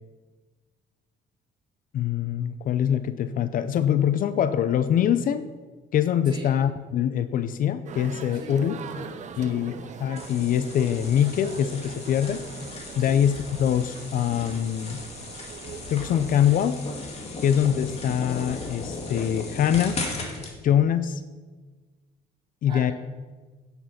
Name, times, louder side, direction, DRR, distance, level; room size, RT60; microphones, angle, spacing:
voice 1, 1.9-5.5 5.9-8.8 9.4-12.4 12.9-15.0 15.9-16.8 17.4-20.0 20.6-21.2 22.6-22.9, left 9 dB, 55° left, 12 dB, 0.6 m, -24 dB
sound 1, 7.9-16.7, right 7 dB, 45° right, 0.7 m, -42 dB
voice 2, 8.3-9.5 13.0-13.2 22.7-22.9, right 1 dB, 30° right, -4 dB, 3.9 m, -40 dB
sound 2, 10.2-20.5, left 3 dB, 40° left, 2.2 m, -37 dB
10.0 x 7.1 x 5.9 m, 1.3 s
cardioid pair, 110°, 17 cm